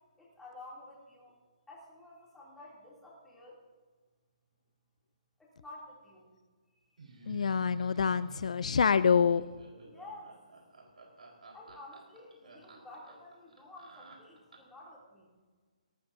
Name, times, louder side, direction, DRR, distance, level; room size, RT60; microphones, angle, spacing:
voice 1, 0.2-1.4 1.7-3.6 5.4-6.3 6.7-7.0 9.8-10.4 11.5-15.3, left 2 dB, 5° left, -6 dB, 2.8 m, -51 dB
Laughter, 7.0-14.8, right 3 dB, 85° right, 4.2 m, -52 dB
voice 2, 7.3-9.5, left 6 dB, 65° left, 15 dB, 0.4 m, -26 dB
18.0 x 17.0 x 2.7 m, 1.4 s
hypercardioid pair, 165°, 4 cm